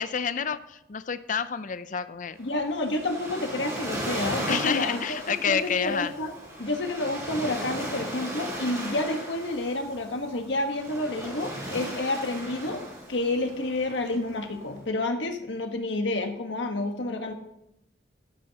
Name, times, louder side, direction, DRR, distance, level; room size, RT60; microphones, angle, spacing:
voice 1, 0.0-2.4 4.5-6.1, left 6 dB, 45° left, 13 dB, 0.5 m, -29 dB
voice 2, 2.4-5.2 5.5-6.3 6.6-12.8 13.1-17.3, left 2 dB, 75° left, 5 dB, 1.4 m, -29 dB
Waves surf, 2.4-14.8, right 1 dB, 15° right, 5.0 m, -37 dB
15.0 x 12.5 x 2.9 m, 0.86 s
head